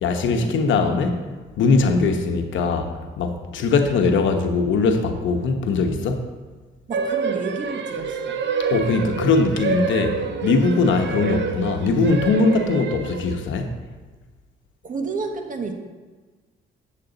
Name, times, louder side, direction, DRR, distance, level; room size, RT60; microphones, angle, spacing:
voice 1, 0.0-1.2 1.6-6.3 8.6-13.7, left 4 dB, 75° left, 5 dB, 1.0 m, -21 dB
voice 2, 6.9-8.4 10.9-11.1 14.8-15.7, right 4 dB, 40° right, 4 dB, 1.2 m, -31 dB
sound 1, 6.9-13.5, right 5 dB, 65° right, 0.8 m, -27 dB
8.4 x 7.5 x 3.9 m, 1.3 s
cardioid pair, 90°, 20 cm